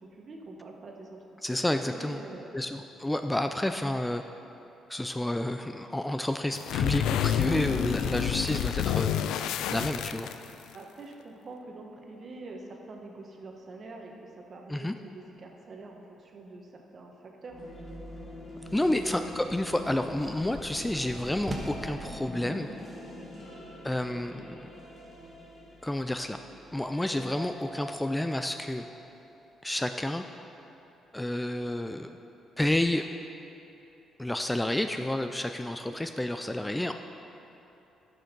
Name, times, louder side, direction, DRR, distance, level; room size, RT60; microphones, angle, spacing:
voice 1, 0.0-1.5 1.8-2.6 10.7-17.6 18.7-19.2 34.7-34.8 35.8-35.9, right 3 dB, 45° right, 1 dB, 1.3 m, -45 dB
voice 2, 1.4-2.2 2.5-4.2 4.9-9.2 9.7-10.3 14.7-14.9 18.7-22.7 23.8-24.7 25.8-26.4 26.7-28.8 29.6-30.2 31.1-32.1 32.6-33.0 34.2-36.9, left 1 dB, 10° left, 7 dB, 0.4 m, -30 dB
sound 1, 6.5-10.7, left 10 dB, 85° left, 0.3 m, -29 dB
sound 2, 17.5-29.3, left 1 dB, 40° left, 2.6 m, -44 dB
sound 3, 18.7-22.1, equal, 20° right, 1.5 m, -42 dB
11.5 x 6.5 x 5.3 m, 3.0 s
cardioid pair, 90°, 0 cm